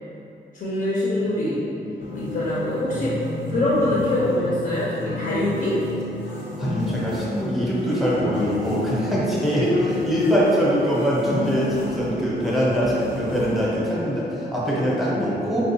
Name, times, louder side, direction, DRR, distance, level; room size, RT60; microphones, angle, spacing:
voice 1, 0.5-1.6 2.2-3.2 3.5-5.8, left 1 dB, 50° left, -8 dB, 0.7 m, -24 dB
sound 1, 1.2-12.6, left 1 dB, 20° right, 0.4 m, -38 dB
sound 2, 2.0-13.9, left 2 dB, 85° left, 0.7 m, -33 dB
voice 2, 6.6-15.6, equal, ahead, -7 dB, 0.8 m, -23 dB
4.4 x 2.4 x 2.7 m, 2.8 s
wide cardioid pair, 110°, 18 cm